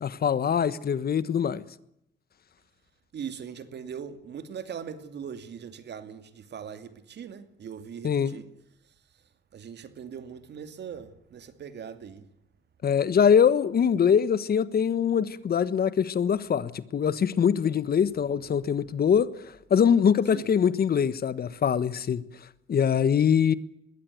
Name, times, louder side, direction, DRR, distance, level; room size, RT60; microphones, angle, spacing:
voice 1, 0.0-1.6 8.0-8.3 12.8-22.2 22.7-23.5, left 7 dB, 50° left, 1.4 m, -23 dB
voice 2, 3.1-8.5 9.5-12.3 20.3-20.5, right 7 dB, 60° right, 2.6 m, -40 dB
21.5 x 16.0 x 9.5 m
cardioid pair, 90°, 20 cm